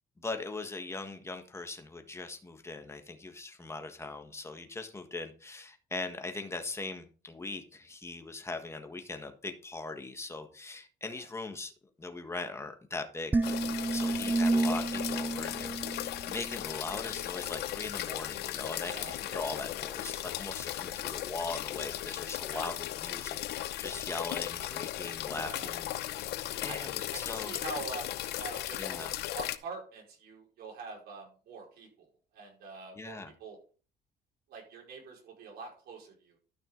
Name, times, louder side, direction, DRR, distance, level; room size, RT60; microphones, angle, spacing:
voice 1, 0.2-11.7 12.0-13.5 13.9-27.5 28.8-29.1 32.9-33.3, left 3 dB, 15° left, 1.6 m, -40 dB
sound 1, 13.3-16.7, right 3 dB, 10° right, 0.3 m, -30 dB
sound 2, 13.4-29.6, left 14 dB, 75° left, 0.7 m, -37 dB
voice 2, 20.8-21.1 22.5-22.7 25.3-25.7 26.7-29.1 29.3-33.6 34.5-36.4, right 4 dB, 70° right, 5.1 m, -45 dB
12.5 x 5.9 x 3.9 m
cardioid pair, 110°, 17 cm